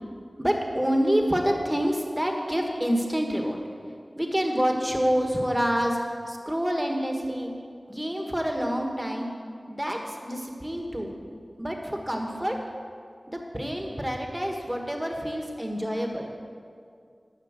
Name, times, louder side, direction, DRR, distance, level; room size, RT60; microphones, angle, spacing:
voice 1, 0.4-3.6 4.1-6.0 6.3-7.5 7.9-9.3 9.7-11.1 11.6-12.6 13.3-16.3, equal, 15° right, 2 dB, 1.5 m, -27 dB
11.0 x 5.6 x 7.4 m, 2.2 s
wide cardioid pair, 50°, 0 cm